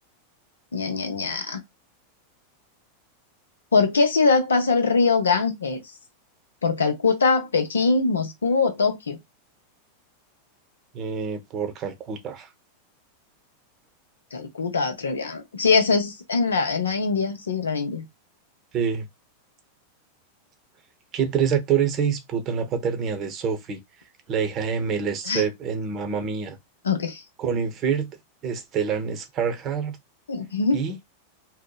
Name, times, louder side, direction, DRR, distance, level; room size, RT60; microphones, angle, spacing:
voice 1, 0.7-1.6 3.7-5.8 6.6-9.2 14.3-18.1 25.2-25.4 26.8-27.2 30.3-30.8, left 4 dB, 85° left, 0.6 m, -22 dB
voice 2, 10.9-12.5 18.7-19.1 21.1-23.8 24.3-26.6 27.4-28.1 28.4-30.0 30.7-31.0, right 7 dB, 40° right, 0.7 m, -26 dB
2.7 x 2.0 x 2.2 m
hypercardioid pair, 95°, 0 cm